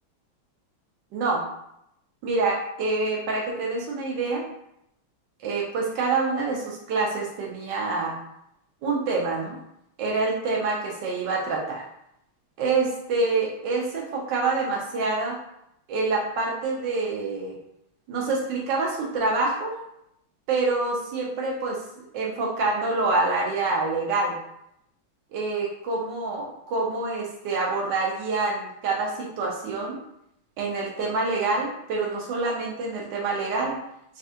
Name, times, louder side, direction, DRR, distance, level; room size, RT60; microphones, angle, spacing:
voice 1, 1.1-1.4 2.2-4.4 5.4-8.2 8.8-9.6 10.0-11.8 12.6-15.4 15.9-17.6 18.1-19.8 20.5-21.8 22.1-24.4 25.3-30.0 30.6-33.8, right 3 dB, 70° right, -1 dB, 1.1 m, -26 dB
4.1 x 2.3 x 2.7 m, 0.79 s
omnidirectional pair, 2.3 m